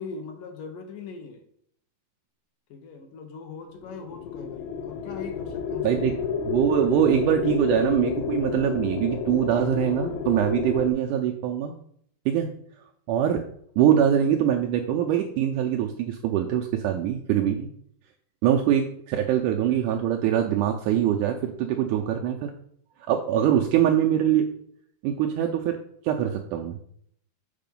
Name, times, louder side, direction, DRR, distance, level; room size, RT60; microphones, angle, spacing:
voice 1, 0.0-1.4 2.7-6.3, left 5 dB, 70° left, 5 dB, 2.4 m, -40 dB
sound 1, 3.8-10.9, left 6 dB, 85° left, 1.7 m, -30 dB
voice 2, 6.5-11.8 12.2-12.5 13.1-13.4 13.8-17.7 18.4-22.5 23.1-24.5 25.0-25.8 26.0-26.8, right 10 dB, 90° right, 2 dB, 1.8 m, -23 dB
7.5 x 4.9 x 5.3 m, 0.68 s
omnidirectional pair, 4.2 m